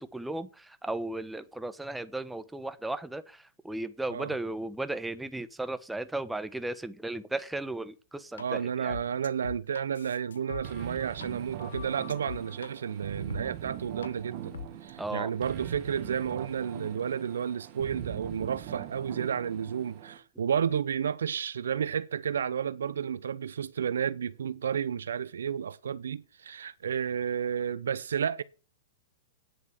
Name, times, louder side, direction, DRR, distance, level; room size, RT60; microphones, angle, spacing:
voice 1, 0.0-9.0 15.0-15.3, right 2 dB, 5° right, 1.1 m, -35 dB
sound 1, 8.4-8.5 8.9-11.3 11.6-12.7 13.3-13.4 14.0-14.1 14.5-14.9, left 7 dB, 85° left, 1.2 m, -43 dB
voice 2, 8.4-14.5 14.8-28.4, right 8 dB, 80° right, 0.7 m, -31 dB
sound 2, 10.6-20.2, right 11 dB, 45° right, 1.8 m, -42 dB
9.6 x 8.0 x 6.5 m
hypercardioid pair, 115°, 0 cm